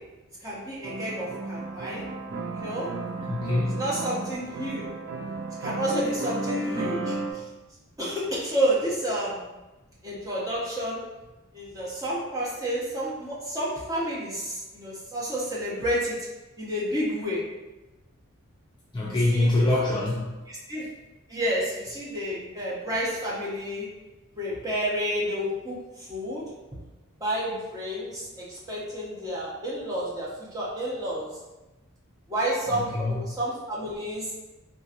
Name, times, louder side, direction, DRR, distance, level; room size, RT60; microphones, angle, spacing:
voice 1, 0.4-2.0 2.5-2.9 3.6-4.8 5.6-7.4 8.0-9.4 10.0-11.0 11.5-16.2 16.6-17.4 19.1-19.7 20.5-20.9 21.3-23.9 24.4-26.4 27.2-31.3 32.3-34.3, equal, 15° right, -7 dB, 0.8 m, -30 dB
sound 1, 0.8-7.3, right 2 dB, 50° right, 0.4 m, -33 dB
voice 2, 3.2-3.8 18.9-20.4 32.7-33.1, left 2 dB, 20° left, -6 dB, 0.4 m, -25 dB
3.8 x 2.8 x 2.5 m, 1.1 s
head